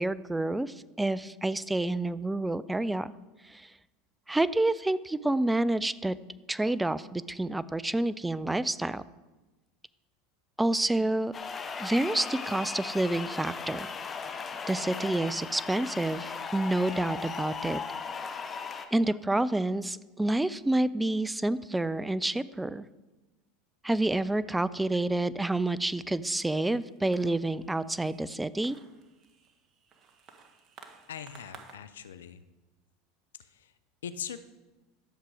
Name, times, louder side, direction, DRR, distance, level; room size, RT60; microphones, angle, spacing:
voice 1, 0.0-3.1 3.4-3.7 4.3-6.2 6.5-9.0 10.6-11.3 11.8-13.9 14.7-17.8 18.9-22.9 23.8-28.8, right 2 dB, 10° right, 17 dB, 0.5 m, -28 dB
sound 1, 11.3-18.9, left 5 dB, 30° left, 1.1 m, -37 dB
sound 2, 26.8-31.8, right 6 dB, 40° right, 1.6 m, -55 dB
voice 2, 31.1-32.4 33.4-33.7 34.0-34.4, left 8 dB, 85° left, 13 dB, 0.6 m, -41 dB
12.5 x 7.4 x 4.9 m, 1.1 s
hypercardioid pair, 95°, 0 cm